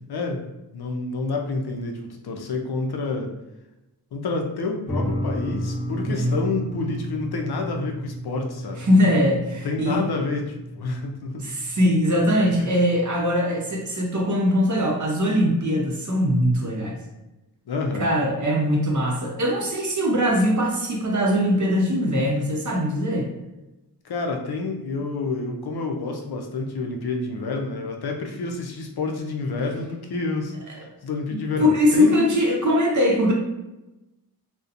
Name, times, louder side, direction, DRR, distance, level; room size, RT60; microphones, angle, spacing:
voice 1, 0.1-0.4 0.7-3.3 4.1-8.9 9.6-11.5 12.6-12.7 17.7-18.1 24.0-32.3, left 3 dB, 70° left, 2 dB, 0.5 m, -29 dB
sound 1, 4.9-13.8, equal, 20° left, 0.8 m, -33 dB
voice 2, 8.8-10.0 11.4-17.0 18.0-23.3 31.3-33.3, equal, 45° right, -1 dB, 0.6 m, -21 dB
2.7 x 2.1 x 2.4 m, 0.98 s
wide cardioid pair, 75°, 40 cm